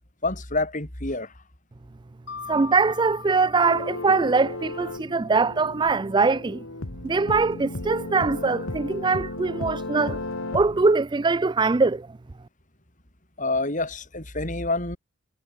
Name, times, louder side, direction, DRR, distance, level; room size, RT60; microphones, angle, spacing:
voice 1, 0.2-1.3 13.4-15.0, left 2 dB, 35° left, 5.1 m, -27 dB
Mallet percussion, 2.3-5.0, left 5 dB, 50° left, 4.8 m, -42 dB
voice 2, 2.5-6.6 7.0-10.2 10.5-12.1, right 4 dB, 20° right, 0.3 m, -22 dB
sound 1, 3.6-10.9, left 2 dB, 75° left, 2.0 m, -35 dB
head